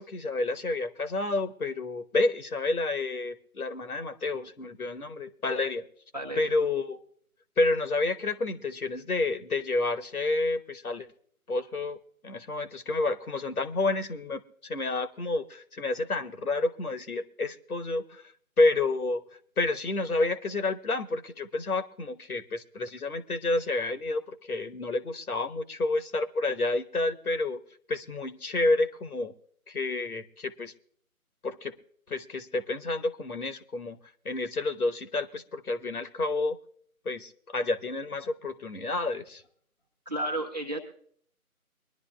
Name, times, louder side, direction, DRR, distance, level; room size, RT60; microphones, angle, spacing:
voice 1, 0.0-5.8 6.4-7.0 7.6-11.1 11.5-12.0 12.2-18.2 18.6-19.2 19.6-27.6 27.9-29.3 29.7-30.7 31.4-31.7 32.1-34.0 34.2-36.6 37.0-39.4, left 2 dB, 75° left, 10 dB, 1.2 m, -29 dB
voice 2, 6.1-6.5 40.1-40.8, right 1 dB, 30° right, 2 dB, 0.9 m, -32 dB
24.0 x 11.0 x 2.3 m, 0.62 s
figure-of-eight pair, 160°, 44 cm